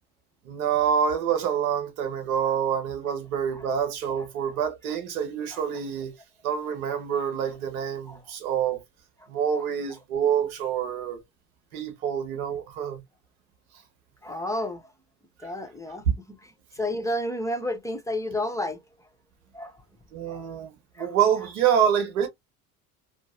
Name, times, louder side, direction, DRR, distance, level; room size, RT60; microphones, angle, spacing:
voice 1, 0.4-6.1 6.4-8.8 9.3-11.2 11.7-13.0 15.4-15.5 16.1-16.2 20.1-22.3, right 8 dB, 90° right, 0.9 m, -26 dB
voice 2, 7.8-8.2 14.2-14.8 15.4-16.0 16.8-18.8 19.5-19.7 20.3-20.4 21.0-21.1, left 1 dB, 5° left, 0.8 m, -31 dB
2.8 x 2.1 x 2.4 m
hypercardioid pair, 70°, 42 cm